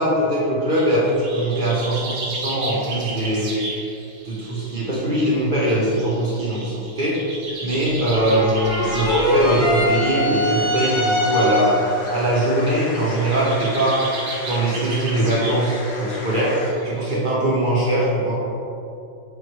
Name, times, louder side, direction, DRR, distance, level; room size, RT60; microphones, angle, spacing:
voice 1, 0.0-3.5 4.2-7.2 7.6-11.8 12.1-14.0 14.5-16.6 16.8-18.3, right 1 dB, 55° right, -6 dB, 0.5 m, -21 dB
sound 1, 0.7-12.1 12.5-12.7 12.9-17.2, right 2 dB, 85° right, 1.9 m, -35 dB
sound 2, 2.8-3.5 7.5-16.7, left 2 dB, 70° left, 1.4 m, -37 dB
sound 3, 8.1-12.0, left 1 dB, 50° left, 1.8 m, -22 dB
6.9 x 3.1 x 4.6 m, 2.6 s
omnidirectional pair, 2.2 m